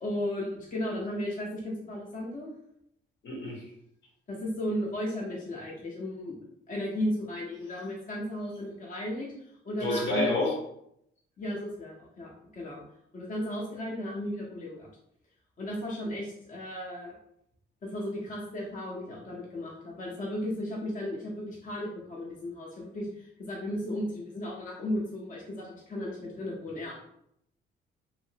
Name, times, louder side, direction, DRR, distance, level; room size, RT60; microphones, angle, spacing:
voice 1, 0.0-2.5 4.3-6.4 6.7-10.3 11.4-12.8 13.1-14.9 15.6-17.1 17.8-26.9, left 1 dB, 40° left, -3 dB, 0.8 m, -35 dB
voice 2, 3.2-3.6 9.8-10.6, left 2 dB, 70° left, -2 dB, 1.1 m, -28 dB
2.8 x 2.5 x 2.8 m, 0.73 s
cardioid pair, 90°, 20 cm